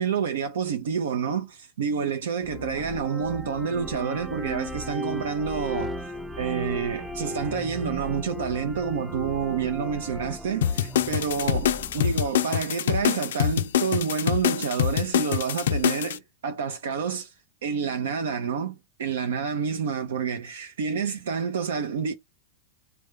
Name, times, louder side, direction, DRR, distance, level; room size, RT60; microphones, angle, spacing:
voice 1, 0.0-6.0 6.4-17.3 17.6-22.1, right 6 dB, 85° right, 0.7 m, -28 dB
sound 1, 2.4-12.3, right 1 dB, ahead, 0.4 m, -36 dB
sound 2, 10.6-16.2, left 10 dB, 80° left, 0.3 m, -25 dB
3.4 x 2.1 x 3.2 m
hypercardioid pair, 135°, 0 cm